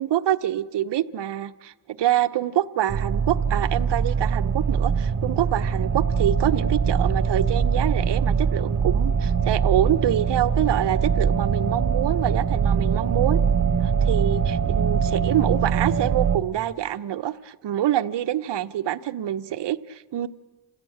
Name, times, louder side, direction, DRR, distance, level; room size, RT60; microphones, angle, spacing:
voice 1, 0.0-13.4 13.8-20.3, right 12 dB, 65° right, 10 dB, 1.0 m, -26 dB
sound 1, 2.9-16.4, right 6 dB, 40° right, 1.3 m, -23 dB
28.5 x 16.0 x 8.7 m, 1.3 s
cardioid pair, 110°, 45 cm